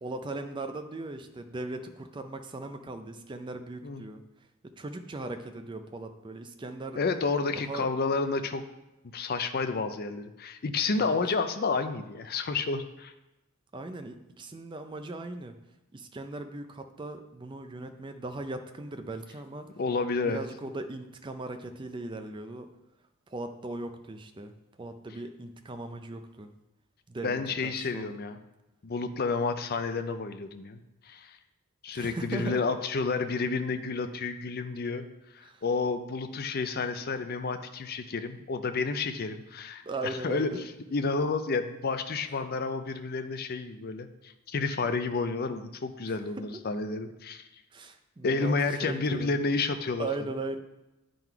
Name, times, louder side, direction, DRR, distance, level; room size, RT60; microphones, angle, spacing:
voice 1, 0.0-4.2 4.8-7.0 7.7-7.9 11.0-11.2 13.7-15.5 15.9-19.7 20.2-22.7 23.3-24.5 24.8-26.5 27.1-28.2 31.9-32.6 35.4-35.6 39.8-40.6 46.1-46.2 47.7-48.6 48.8-49.6 50.0-50.6, right 2 dB, 20° right, 7 dB, 0.4 m, -38 dB
voice 2, 7.0-8.6 9.1-13.1 19.8-20.4 27.2-28.4 28.8-30.8 31.1-31.4 31.8-35.1 35.6-39.8 40.2-40.6 40.9-47.4 48.2-50.1, left 4 dB, 45° left, 9 dB, 0.5 m, -30 dB
9.3 x 3.9 x 4.6 m, 0.99 s
head